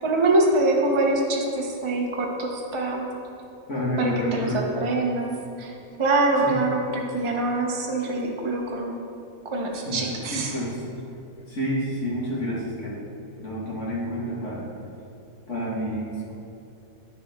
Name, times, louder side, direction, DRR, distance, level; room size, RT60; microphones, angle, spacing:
voice 1, 0.0-3.0 4.0-5.3 5.6-5.7 6.0-8.9 9.5-10.5, right 2 dB, 30° right, 0 dB, 0.6 m, -24 dB
voice 2, 3.7-4.7 6.4-6.5 9.8-10.8 11.5-13.0 13.4-14.7 15.5-16.3, equal, 50° left, -7 dB, 1.9 m, -29 dB
10.0 x 6.7 x 3.6 m, 2.6 s
omnidirectional pair, 1.7 m